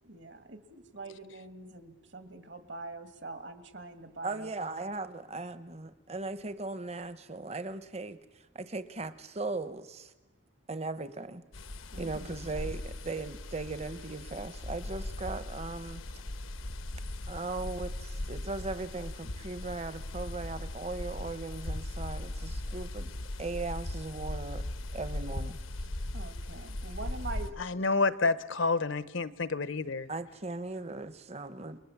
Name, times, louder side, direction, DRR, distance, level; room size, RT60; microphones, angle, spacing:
voice 1, 0.0-4.5 11.9-12.3 26.1-27.5, right 3 dB, 60° right, 2.2 m, -44 dB
voice 2, 4.2-8.2 8.5-10.1 10.7-11.4 12.0-16.0 17.3-23.1 23.4-24.6 24.9-25.6 30.1-31.8, right 3 dB, 30° right, 1.0 m, -38 dB
sound 1, 11.5-27.5, left 1 dB, 85° left, 1.1 m, -39 dB
voice 3, 27.6-30.1, left 3 dB, 70° left, 0.9 m, -29 dB
29.5 x 21.0 x 7.2 m
head